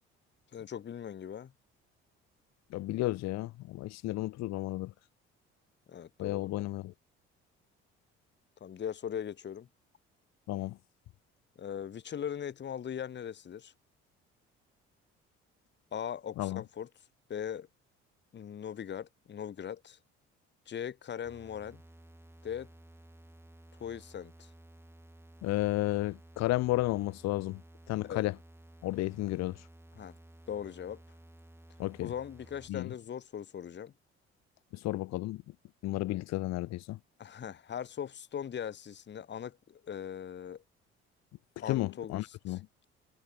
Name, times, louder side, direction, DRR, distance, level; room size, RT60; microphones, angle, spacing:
voice 1, 0.5-1.5 5.9-6.4 8.6-9.7 11.6-13.7 15.9-16.9 17.3-17.7 18.3-20.0 20.7-21.8 22.4-22.7 23.8-24.5 28.0-28.3 30.0-30.1 30.5-31.0 32.0-33.9 37.2-40.6 41.6-42.6, left 8 dB, 35° left, 0.9 m, -40 dB
voice 2, 2.7-4.9 6.2-6.9 10.5-10.8 16.4-16.6 25.4-27.6 27.9-28.4 28.8-29.6 31.8-32.1 32.7-32.9 34.7-35.4 35.8-37.0 41.6-42.7, left 17 dB, 60° left, 0.6 m, -32 dB
sound 1, 21.2-32.7, right 1 dB, 10° right, 4.7 m, -55 dB
hypercardioid pair, 60°, 31 cm